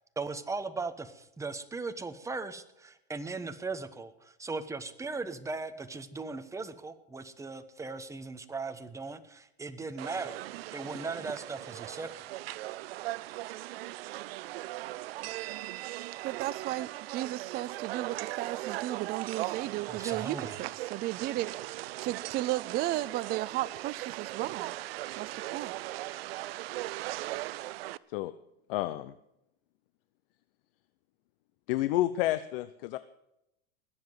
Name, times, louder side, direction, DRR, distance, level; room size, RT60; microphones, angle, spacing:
voice 1, 0.2-12.2 19.9-20.6, right 3 dB, 10° right, 10 dB, 1.1 m, -38 dB
sound 1, 10.0-28.0, right 17 dB, 75° right, 0.6 m, -39 dB
voice 2, 16.2-21.7 22.0-24.7 25.1-25.7, right 15 dB, 30° right, 15 dB, 0.4 m, -34 dB
voice 3, 28.7-29.1 31.7-33.0, left 15 dB, 65° left, 14 dB, 0.7 m, -30 dB
20.0 x 7.7 x 7.9 m, 0.85 s
supercardioid pair, 115°, 30 cm